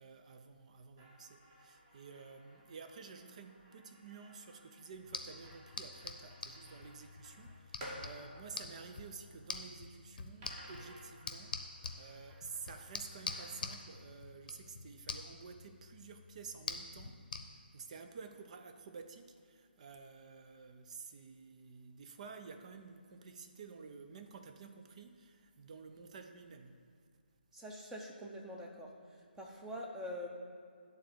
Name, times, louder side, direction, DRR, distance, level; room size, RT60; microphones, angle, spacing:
voice 1, 0.0-26.8, right 5 dB, 40° right, 0.6 m, -51 dB
sound 1, 1.0-9.7 10.4-13.9, equal, 25° right, 1.4 m, -56 dB
sound 2, 4.9-17.4, left 4 dB, 50° left, 0.8 m, -47 dB
voice 2, 27.5-30.3, left 1 dB, 5° right, 0.7 m, -45 dB
10.0 x 3.9 x 6.9 m
figure-of-eight pair, 150°, 6 cm